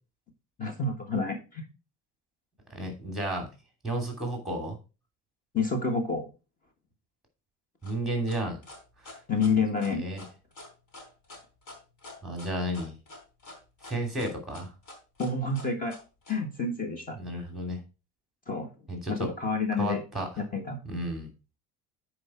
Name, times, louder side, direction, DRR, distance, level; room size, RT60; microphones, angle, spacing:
voice 1, 0.6-1.6 5.5-6.2 9.3-10.0 15.2-16.0 16.3-17.2 18.5-18.7 19.1-20.0 20.4-20.8, left 4 dB, 25° left, 5 dB, 1.4 m, -28 dB
voice 2, 2.7-3.5 3.8-4.8 7.8-8.6 9.0-9.2 9.9-10.2 12.2-13.0 13.9-14.7 17.2-17.8 18.9-19.3 19.8-20.3 20.8-21.3, right 1 dB, ahead, 4 dB, 2.8 m, -32 dB
sound 1, 7.8-16.4, left 2 dB, 60° left, 4.1 m, -47 dB
9.6 x 4.9 x 4.3 m, 0.31 s
cardioid pair, 150°, 33 cm